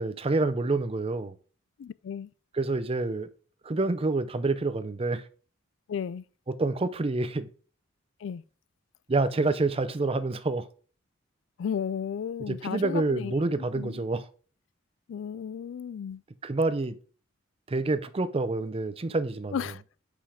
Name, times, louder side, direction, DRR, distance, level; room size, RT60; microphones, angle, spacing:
voice 1, 0.0-1.3 2.5-3.3 3.6-5.2 6.5-7.5 9.1-10.6 12.5-14.3 16.4-17.0 17.7-19.6, right 3 dB, 30° right, 0.5 m, -27 dB
voice 2, 1.8-2.3 5.9-6.2 8.2-8.4 11.6-13.4 13.7-13.9 15.1-16.2 19.5-19.8, left 7 dB, 65° left, 0.3 m, -34 dB
5.7 x 5.1 x 4.9 m
head